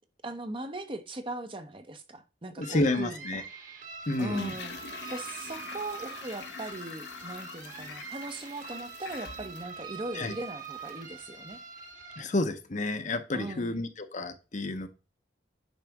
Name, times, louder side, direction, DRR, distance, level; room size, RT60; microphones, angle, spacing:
voice 1, 0.2-3.4 4.2-4.8 5.1-11.6 13.3-13.7, right 2 dB, 30° right, 1.0 m, -39 dB
voice 2, 2.6-3.4 4.1-4.5 10.2-10.3 12.2-14.9, left 2 dB, 45° left, 0.9 m, -30 dB
sound 1, 2.6-12.2, right 6 dB, 50° right, 2.0 m, -44 dB
Toilet flush, 4.0-11.1 11.4-11.5, left 5 dB, 75° left, 1.0 m, -45 dB
9.3 x 5.7 x 3.6 m
head